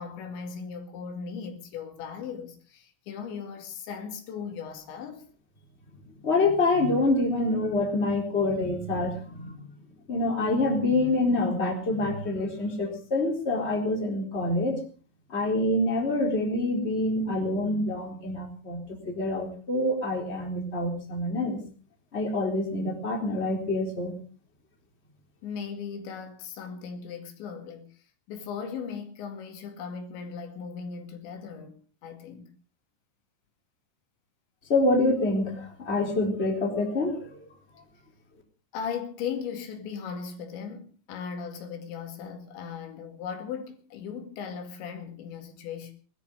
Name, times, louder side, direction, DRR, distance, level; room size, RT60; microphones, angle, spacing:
voice 1, 0.0-5.3 25.4-27.9 28.3-32.5 38.7-45.9, left 6 dB, 80° left, 4.6 m, -38 dB
voice 2, 6.2-9.5 10.1-14.8 15.3-21.6 22.1-24.1 34.7-37.3, left 2 dB, 15° left, 3.6 m, -26 dB
20.5 x 13.0 x 5.0 m
omnidirectional pair, 5.1 m